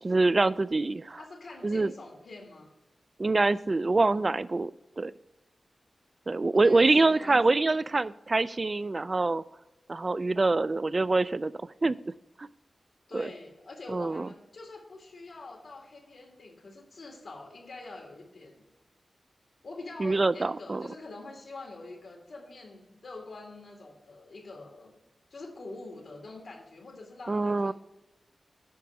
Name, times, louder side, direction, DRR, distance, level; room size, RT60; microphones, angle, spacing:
voice 1, 0.0-1.2 1.6-1.9 3.2-4.7 5.0-5.1 6.3-9.4 9.9-11.5 11.8-12.0 12.4-12.5 13.1-13.3 13.9-14.3 20.0-20.9 27.3-27.7, right 3 dB, 35° right, 17 dB, 0.3 m, -25 dB
voice 2, 1.2-2.7 6.5-8.0 13.1-18.6 19.6-24.9 25.3-27.7, left 2 dB, 75° left, 0 dB, 2.1 m, -45 dB
8.2 x 5.9 x 6.3 m, 1.0 s
wide cardioid pair, 130°, 0 cm